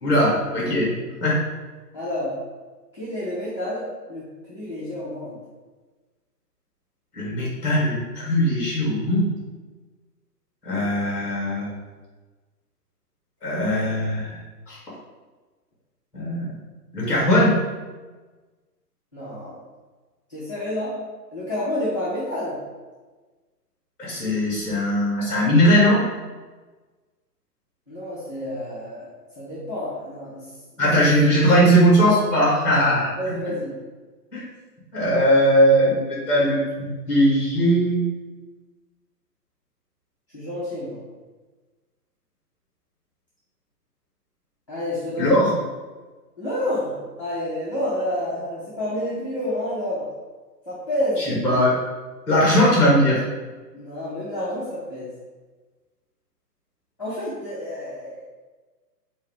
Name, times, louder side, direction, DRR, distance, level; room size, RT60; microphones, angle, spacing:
voice 1, 0.0-0.9 1.2-1.4 7.1-9.3 10.6-11.7 13.4-14.4 14.7-14.8 16.1-16.5 16.9-17.6 24.0-26.0 30.8-33.3 34.3-34.4 34.9-38.1 45.2-45.5 51.3-51.7 52.3-53.2, equal, 5° left, -6 dB, 1.4 m, -19 dB
voice 2, 1.9-2.4 2.9-5.4 19.1-19.6 20.3-20.9 21.3-22.6 27.9-29.1 29.4-30.5 33.2-33.8 40.3-41.0 44.7-45.4 46.4-50.1 50.7-51.4 53.7-55.1 57.0-58.2, left 1 dB, 20° left, -12 dB, 0.5 m, -29 dB
4.4 x 2.7 x 3.6 m, 1.3 s
hypercardioid pair, 150°, 50 cm